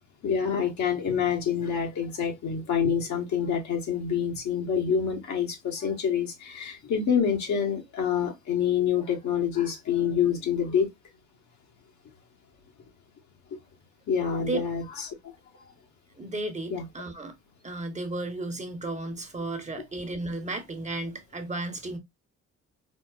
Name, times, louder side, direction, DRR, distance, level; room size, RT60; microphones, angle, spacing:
voice 1, 0.2-10.9 14.1-15.2 16.7-16.9, left 7 dB, 70° left, 1.2 m, -27 dB
voice 2, 16.2-17.4 17.6-22.0, right 2 dB, 25° right, 0.9 m, -34 dB
4.3 x 2.1 x 2.3 m
cardioid pair, 90°, 30 cm